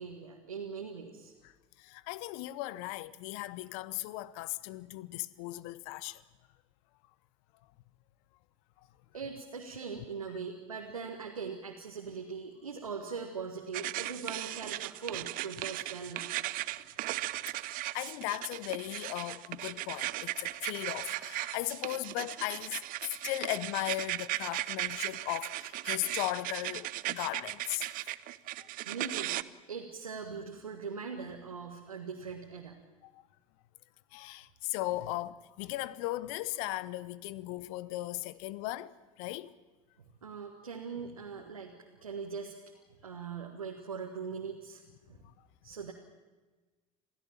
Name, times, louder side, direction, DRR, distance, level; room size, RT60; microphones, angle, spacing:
voice 1, 0.0-1.3 9.1-16.3 28.9-29.4 29.7-32.8 40.0-41.8 42.0-42.5 43.0-44.8 45.1-45.2 45.6-45.9, right 5 dB, 90° right, 1.8 m, -41 dB
voice 2, 1.8-6.2 17.6-22.8 23.2-27.9 33.0-33.2 34.1-38.9 39.2-39.5, left 17 dB, 65° left, 0.9 m, -37 dB
sound 1, 13.7-29.4, right 17 dB, 55° right, 0.8 m, -37 dB
27.5 x 16.5 x 7.4 m
hypercardioid pair, 70°, 18 cm